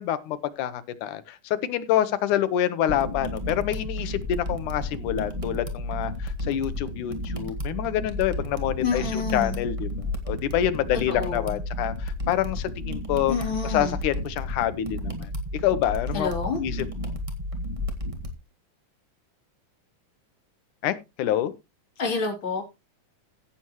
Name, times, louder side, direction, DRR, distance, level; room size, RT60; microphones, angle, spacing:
voice 1, 0.0-13.3 13.6-15.3 15.6-16.3 16.6-16.9 20.8-21.5, left 11 dB, 75° left, 2.4 m, -27 dB
sound 1, 2.9-18.3, left 1 dB, 20° right, 0.9 m, -32 dB
voice 2, 8.8-9.6 11.1-11.5 13.3-14.0 16.1-16.6 22.0-22.6, left 5 dB, 40° left, 3.8 m, -28 dB
16.0 x 7.2 x 3.0 m
omnidirectional pair, 3.6 m